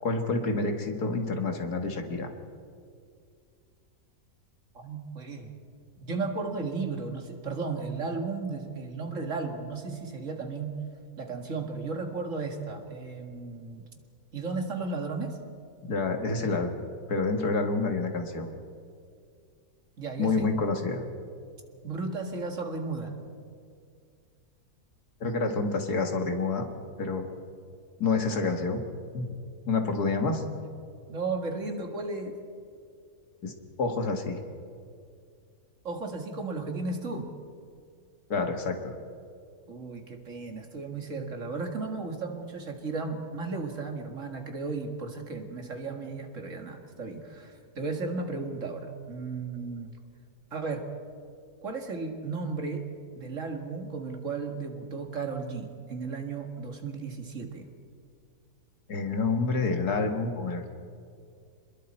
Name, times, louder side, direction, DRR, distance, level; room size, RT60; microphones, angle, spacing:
voice 1, 0.0-2.3 15.8-18.5 20.2-21.0 25.2-26.7 27.0-27.3 28.0-28.8 29.1-29.3 29.7-30.4 33.4-34.4 38.3-39.0 58.9-60.8, left 3 dB, 85° left, 5 dB, 2.3 m, -28 dB
voice 2, 4.7-5.5 6.0-10.8 11.2-13.8 14.3-15.4 20.0-20.5 21.8-23.1 31.1-32.4 35.8-37.3 39.7-49.9 50.5-50.9 51.6-52.8 53.2-57.7, right 4 dB, 55° right, 4 dB, 2.3 m, -34 dB
28.0 x 21.0 x 4.4 m, 2.3 s
omnidirectional pair, 1.6 m